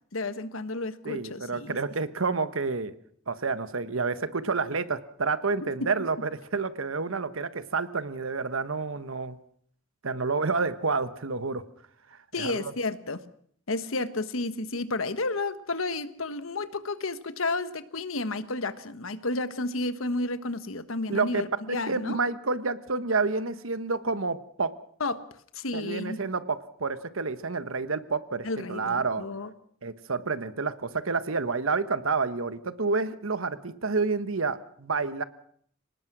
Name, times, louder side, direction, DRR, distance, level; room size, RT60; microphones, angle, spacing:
voice 1, 0.1-1.8 5.6-5.9 12.3-13.2 13.7-22.2 25.0-25.2 25.5-26.2 28.4-29.5, left 2 dB, 80° left, 12 dB, 1.3 m, -31 dB
voice 2, 1.0-2.9 3.3-9.4 10.0-11.6 12.1-12.6 21.1-21.4 21.7-24.7 25.7-29.2 29.8-35.2, right 4 dB, 80° right, 13 dB, 1.2 m, -29 dB
24.5 x 19.5 x 6.1 m, 0.62 s
head